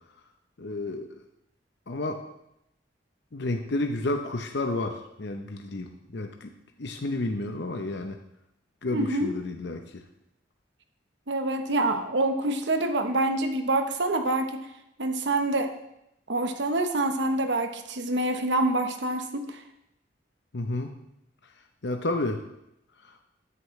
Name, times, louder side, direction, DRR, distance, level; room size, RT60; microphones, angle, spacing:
voice 1, 0.6-1.2 1.9-2.2 3.3-6.5 6.8-8.2 8.8-10.0 20.5-20.9 21.8-22.4 23.0-23.1, left 2 dB, 65° left, 5 dB, 0.8 m, -31 dB
voice 2, 8.9-9.3 11.3-14.7 15.0-15.7 16.3-19.6, right 2 dB, 65° right, 7 dB, 1.0 m, -26 dB
12.5 x 10.0 x 3.2 m, 0.82 s
head